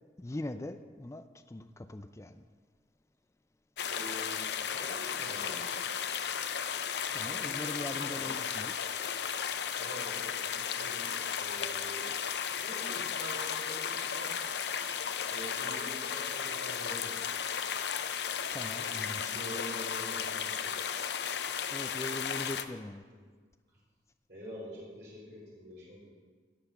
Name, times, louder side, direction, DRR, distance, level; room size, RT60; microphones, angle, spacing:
voice 1, 0.2-2.4 7.1-8.9 18.5-19.4 21.7-23.0, left 1 dB, 15° left, 9 dB, 0.4 m, -41 dB
sound 1, 3.8-22.6, left 7 dB, 65° left, 0.5 m, -35 dB
voice 2, 3.9-5.8 7.1-8.4 9.8-12.2 12.6-14.3 15.3-17.1 18.9-20.8 23.1-23.2 24.3-26.1, equal, 60° right, -7 dB, 4.0 m, -46 dB
17.0 x 5.7 x 5.9 m, 1.5 s
head